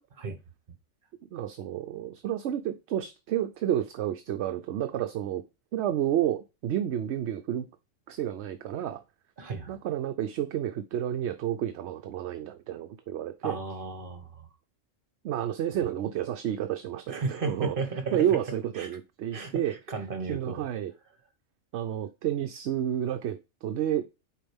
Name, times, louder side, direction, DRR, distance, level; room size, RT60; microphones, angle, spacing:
voice 1, 1.3-5.4 5.7-7.7 8.1-9.0 9.7-13.6 15.2-17.7 18.1-19.7 20.3-20.9 21.7-24.0, right 11 dB, 65° right, 0.8 m, -30 dB
voice 2, 9.4-9.8 13.4-14.5 17.1-18.2 18.8-18.9 19.3-20.6, right 3 dB, 45° right, 1.5 m, -34 dB
7.4 x 4.6 x 3.5 m
omnidirectional pair, 1.3 m